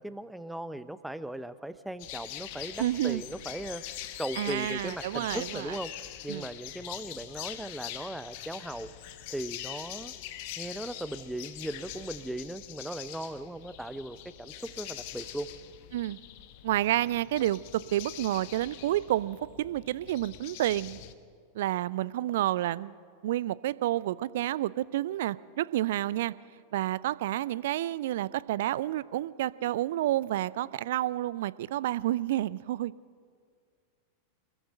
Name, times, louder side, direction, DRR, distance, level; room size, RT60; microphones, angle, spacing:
voice 1, 0.0-3.8 4.2-5.9 6.2-8.9 9.3-10.1 10.6-15.5, right 1 dB, 5° right, 13 dB, 0.8 m, -38 dB
sound 1, 2.0-21.1, left 13 dB, 45° left, 1.1 m, -43 dB
voice 2, 2.8-3.2 4.4-5.8 6.3-6.5 15.9-16.2 16.6-21.0 21.5-23.0 23.2-26.3 26.7-32.9, right 14 dB, 55° right, 20 dB, 0.5 m, -30 dB
26.0 x 14.0 x 7.8 m, 2.1 s
figure-of-eight pair, 90°, 0 cm